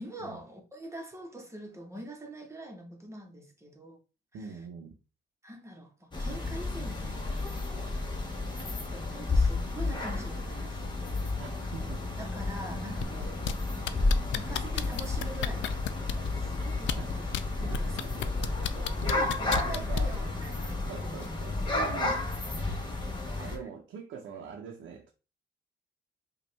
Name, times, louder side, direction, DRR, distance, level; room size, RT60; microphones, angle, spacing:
voice 1, 0.0-4.0 4.4-4.5 5.4-7.5 8.9-10.9 12.2-13.4 14.3-15.9 16.3-18.3 19.2-20.8 23.4-23.6, right 1 dB, 15° right, 1.3 m, -44 dB
voice 2, 4.3-4.9 11.4-12.1 12.8-13.0 17.0-17.2 17.6-18.2 18.7-20.2 20.9-22.2 23.4-25.1, right 6 dB, 80° right, 0.9 m, -43 dB
sound 1, 6.1-23.6, left 2 dB, 25° left, 1.3 m, -32 dB
sound 2, 13.0-13.5 13.9-16.3 16.8-17.4 17.7-20.2 21.2-21.3, left 11 dB, 70° left, 0.4 m, -32 dB
5.2 x 2.6 x 3.3 m
cardioid pair, 90°, 20 cm